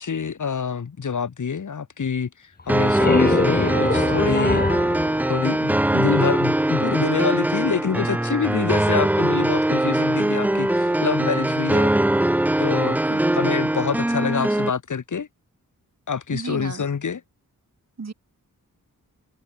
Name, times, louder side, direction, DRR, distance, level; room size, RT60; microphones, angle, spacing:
voice 1, 0.0-2.3 2.7-4.6 5.3-11.9 12.6-13.0 13.3-15.3 16.1-17.2, left 6 dB, 60° left, 2.0 m, -26 dB
sound 1, 2.6-6.3, left 3 dB, 25° left, 1.8 m, -25 dB
sound 2, 2.7-14.7, right 1 dB, 5° right, 0.3 m, -21 dB
sound 3, 7.7-13.8, right 6 dB, 75° right, 7.9 m, -47 dB
voice 2, 16.3-16.8 18.0-18.1, right 4 dB, 50° right, 6.6 m, -33 dB
wide cardioid pair, 140°, 34 cm